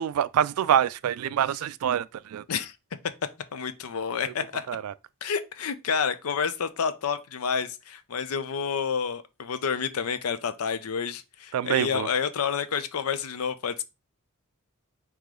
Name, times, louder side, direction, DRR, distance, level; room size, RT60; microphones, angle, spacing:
voice 1, 0.0-2.4 4.7-4.9 11.5-12.1, right 9 dB, 90° right, 0.3 m, -25 dB
voice 2, 3.5-4.7 5.2-13.8, left 6 dB, 90° left, 0.5 m, -29 dB
4.8 x 3.0 x 3.7 m
head